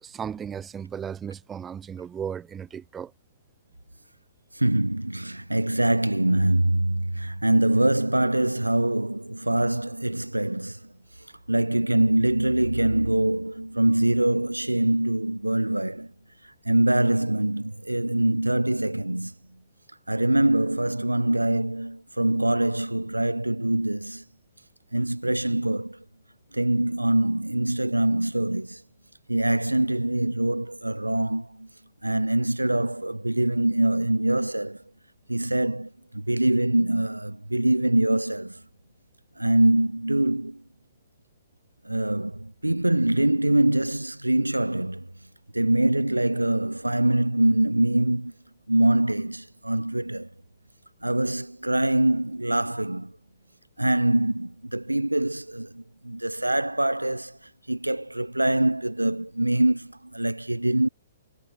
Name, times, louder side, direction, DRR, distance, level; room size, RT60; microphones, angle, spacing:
voice 1, 0.0-3.1, right 8 dB, 15° right, 3.2 m, -35 dB
voice 2, 4.5-10.8 11.5-16.1 16.7-19.3 20.1-24.2 24.9-26.0 26.5-28.8 29.3-31.7 32.0-34.8 35.3-35.9 36.1-38.6 39.4-40.6 41.9-45.1 45.5-48.3 48.7-50.3 51.0-53.1 53.8-57.4 57.7-60.9, right 1 dB, 85° right, 0.9 m, -24 dB
figure-of-eight pair, 120°, 0 cm